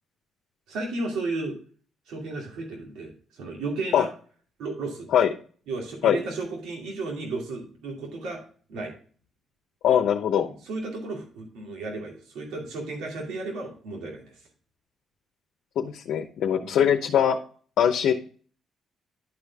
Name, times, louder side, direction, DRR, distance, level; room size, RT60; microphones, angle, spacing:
voice 1, 0.7-1.5 2.1-4.1 4.6-5.1 5.7-8.4 8.7-8.9 10.5-14.4 16.6-16.9, right 3 dB, 85° right, -1 dB, 2.5 m, -34 dB
voice 2, 9.8-10.5 15.8-17.4 17.8-18.1, left 9 dB, 75° left, 4 dB, 0.8 m, -21 dB
11.0 x 5.1 x 3.5 m, 0.43 s
cardioid pair, 90°, 0 cm